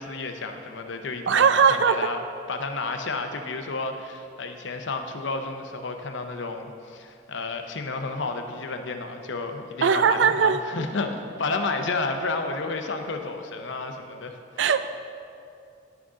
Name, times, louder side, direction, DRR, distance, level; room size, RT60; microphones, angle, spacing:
voice 1, 0.0-2.2 2.5-14.6, left 3 dB, 65° left, 5 dB, 0.7 m, -31 dB
voice 2, 1.3-2.0 9.8-10.6 14.6-14.9, right 6 dB, 65° right, 11 dB, 0.4 m, -19 dB
10.5 x 6.2 x 3.7 m, 2.5 s
head